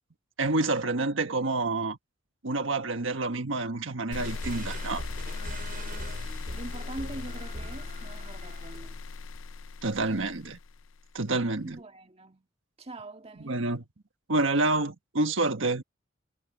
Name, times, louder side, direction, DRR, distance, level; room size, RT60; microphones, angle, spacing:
voice 1, 0.4-2.0 2.4-5.0 9.8-10.6 11.1-11.8 13.4-13.8 14.3-15.8, right 2 dB, 75° right, 1.4 m, -28 dB
sound 1, 4.1-11.2, left 4 dB, 80° left, 0.6 m, -38 dB
sound 2, 4.1-9.0, right 2 dB, 45° right, 6.4 m, -43 dB
voice 2, 6.0-9.0 11.6-12.5 12.8-13.6, right 2 dB, 30° right, 2.0 m, -43 dB
head